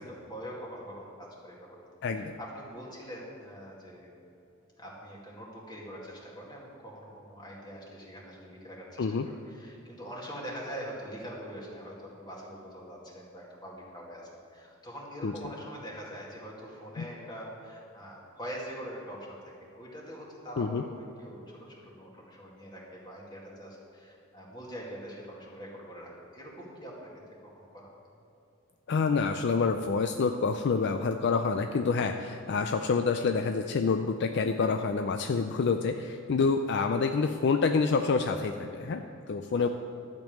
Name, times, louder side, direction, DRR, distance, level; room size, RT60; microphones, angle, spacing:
voice 1, 0.0-1.8 2.2-4.1 4.8-27.1 27.7-28.0 32.5-32.6 39.5-39.6, equal, 20° left, -4 dB, 2.2 m, -43 dB
voice 2, 2.0-2.3 9.0-9.3 15.2-15.3 17.0-17.1 20.6-20.8 28.9-39.7, left 4 dB, 55° left, 6 dB, 0.4 m, -27 dB
12.0 x 5.3 x 7.5 m, 2.9 s
head